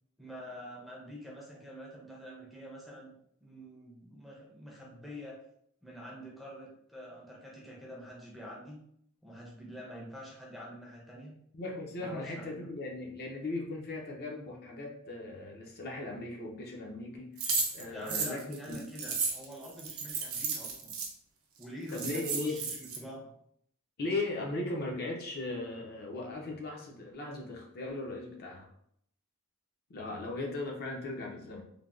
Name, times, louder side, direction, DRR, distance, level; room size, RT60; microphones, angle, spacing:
voice 1, 0.2-5.4 5.8-8.8 9.2-11.3 12.0-12.7 17.9-20.9 21.6-23.3, equal, ahead, -3 dB, 0.5 m, -46 dB
voice 2, 11.5-17.4 17.7-18.8 21.9-22.6 24.0-28.7 29.9-31.6, left 2 dB, 50° left, -1 dB, 0.5 m, -38 dB
sound 1, 17.4-21.1 21.6-21.7 21.9-23.0, right 4 dB, 75° right, 0.6 m, -34 dB
3.2 x 2.1 x 2.4 m, 0.71 s
head